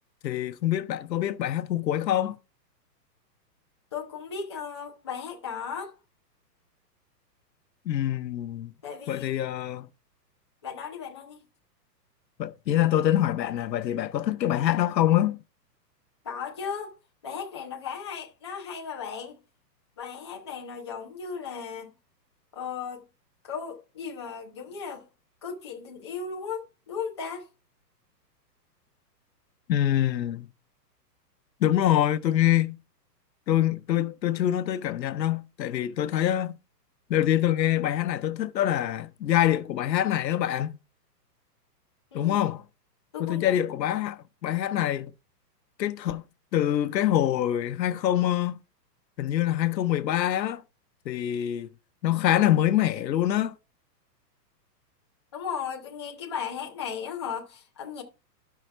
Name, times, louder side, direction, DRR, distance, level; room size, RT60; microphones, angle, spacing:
voice 1, 0.2-2.4 7.9-8.7 9.1-9.9 12.4-15.4 29.7-30.5 31.6-32.8 33.5-36.6 37.1-40.8 42.1-42.6 43.2-45.1 45.8-46.2 46.5-48.6 49.2-50.6 51.0-51.7 52.0-53.5, left 12 dB, 85° left, 0.9 m, -25 dB
voice 2, 3.9-5.9 8.8-9.5 10.6-11.4 16.2-16.9 17.2-19.4 20.0-21.9 22.5-23.0 23.4-25.1 25.4-27.5 42.1-42.4 43.1-43.6 55.3-58.0, left 6 dB, 20° left, 0.5 m, -36 dB
13.0 x 5.7 x 3.3 m
hypercardioid pair, 170°, 50 cm